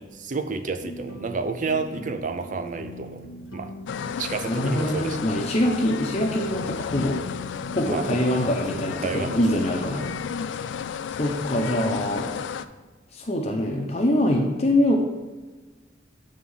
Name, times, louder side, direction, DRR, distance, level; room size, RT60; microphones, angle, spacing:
voice 1, 0.2-3.3 3.5-3.7 4.2-5.2 7.8-8.4 8.7-9.7, right 4 dB, 40° right, 9 dB, 0.5 m, -30 dB
sound 1, 0.8-10.1, left 1 dB, 90° left, 1.0 m, -42 dB
sound 2, 3.9-12.6, left 7 dB, 70° left, 0.3 m, -32 dB
voice 2, 4.5-7.2 7.7-10.1 11.2-12.3 13.1-15.0, left 1 dB, 35° left, 1 dB, 0.6 m, -24 dB
7.7 x 3.6 x 5.5 m, 1.3 s
head